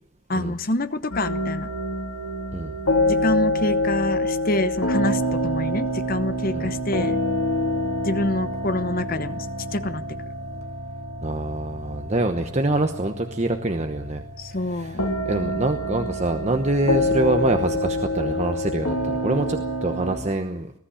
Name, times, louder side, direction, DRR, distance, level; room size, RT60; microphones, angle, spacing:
voice 1, 0.3-1.7 3.1-7.2 8.0-9.5 9.7-10.0 14.4-15.1, left 1 dB, 40° left, 12 dB, 1.0 m, -26 dB
sound 1, 1.1-20.2, left 1 dB, 90° left, 3.2 m, -27 dB
voice 2, 11.2-14.2 14.6-20.7, right 2 dB, 30° right, 6 dB, 1.0 m, -25 dB
20.0 x 13.0 x 10.0 m, 0.68 s
head